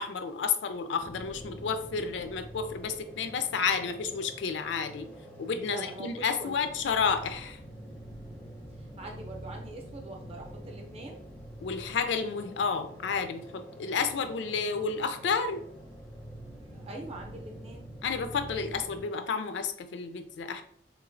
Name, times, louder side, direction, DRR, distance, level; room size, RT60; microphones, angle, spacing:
voice 1, 0.0-5.1 5.4-7.6 11.6-15.6 18.0-20.6, left 5 dB, 85° left, 8 dB, 0.4 m, -31 dB
sound 1, 1.0-19.0, right 1 dB, 10° left, 0.4 m, -46 dB
voice 2, 5.6-6.7 8.8-11.2 16.7-17.9, right 2 dB, 35° right, 1 dB, 0.6 m, -43 dB
3.0 x 3.0 x 2.5 m, 0.62 s
head